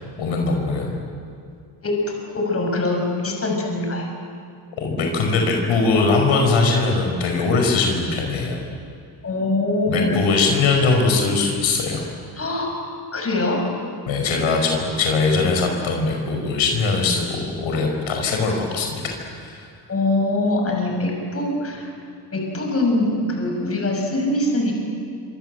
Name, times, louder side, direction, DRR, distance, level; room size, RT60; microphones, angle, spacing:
voice 1, 0.2-1.0 4.8-8.6 9.9-12.1 14.1-19.7, left 3 dB, 80° left, 2 dB, 5.2 m, -21 dB
voice 2, 1.8-4.1 9.2-10.1 12.4-12.7 13.1-13.6 19.9-21.9 22.3-24.7, left 2 dB, 30° left, 1 dB, 6.6 m, -23 dB
27.0 x 26.0 x 7.9 m, 2.4 s
cardioid pair, 130°, 47 cm